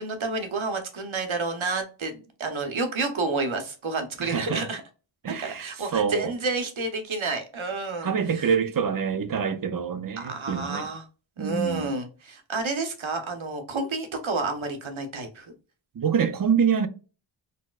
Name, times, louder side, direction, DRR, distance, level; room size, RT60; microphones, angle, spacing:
voice 1, 0.0-4.8 5.4-8.5 10.2-11.0 11.4-15.5, right 3 dB, 80° right, 0.8 m, -30 dB
voice 2, 4.2-4.7 5.2-6.3 8.0-10.9 11.4-11.9 16.0-16.9, right 7 dB, 45° right, 0.4 m, -26 dB
4.1 x 2.1 x 2.3 m
wide cardioid pair, 65°, 48 cm